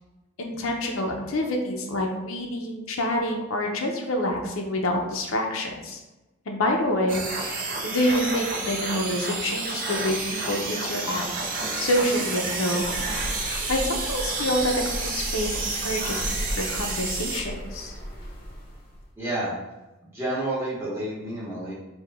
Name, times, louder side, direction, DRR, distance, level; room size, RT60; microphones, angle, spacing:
voice 1, 0.4-6.0 6.5-11.2 11.8-12.9 13.4-17.9, left 1 dB, 85° left, 2 dB, 0.7 m, -27 dB
sound 1, 7.1-17.4, right 3 dB, 40° right, 0.6 m, -30 dB
sound 2, 12.8-19.1, equal, 45° left, 0.7 m, -36 dB
voice 2, 19.2-19.5 20.0-21.7, right 1 dB, 10° right, -8 dB, 1.2 m, -30 dB
4.8 x 2.3 x 3.5 m, 1.0 s
head